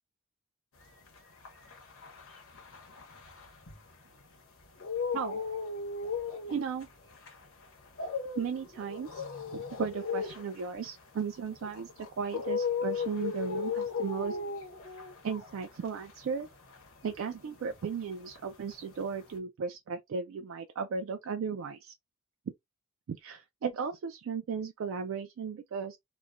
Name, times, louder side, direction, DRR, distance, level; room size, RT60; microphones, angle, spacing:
sound 1, 1.0-4.2 4.6-18.0 18.3-19.3, left 5 dB, 80° left, 1.0 m, -37 dB
voice 1, 6.5-6.9 8.4-9.2 9.5-14.4 15.2-16.5 17.0-21.9 23.1-26.0, right 6 dB, 70° right, 0.3 m, -36 dB
3.0 x 2.2 x 2.4 m
head